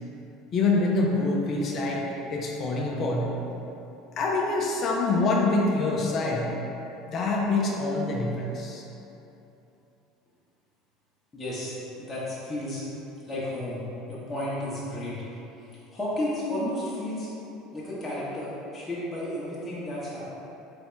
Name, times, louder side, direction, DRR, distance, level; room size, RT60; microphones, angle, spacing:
voice 1, 0.5-3.3 4.2-6.5 7.1-8.8, left 3 dB, 45° left, -2 dB, 0.5 m, -25 dB
voice 2, 11.3-11.7 12.0-12.8 13.3-15.1 15.9-17.3 17.7-20.3, left 1 dB, 20° left, -9 dB, 1.0 m, -32 dB
4.0 x 3.3 x 3.2 m, 3.0 s
hypercardioid pair, 70°, 0 cm